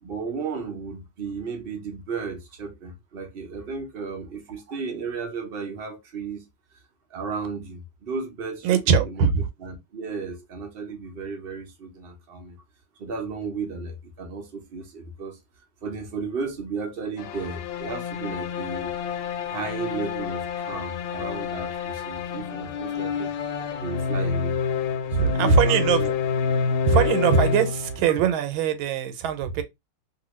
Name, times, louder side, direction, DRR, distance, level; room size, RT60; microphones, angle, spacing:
voice 1, 0.0-6.5 7.1-9.3 9.6-12.6 13.0-15.4 15.8-19.0 19.5-23.3 23.8-24.6 25.2-26.1, right 4 dB, 60° right, 0.6 m, -34 dB
voice 2, 8.6-9.5 25.1-26.1 26.9-29.6, right 6 dB, 90° right, 1.4 m, -21 dB
sound 1, 17.2-28.3, left 6 dB, 80° left, 1.3 m, -28 dB
2.8 x 2.6 x 3.0 m
omnidirectional pair, 2.2 m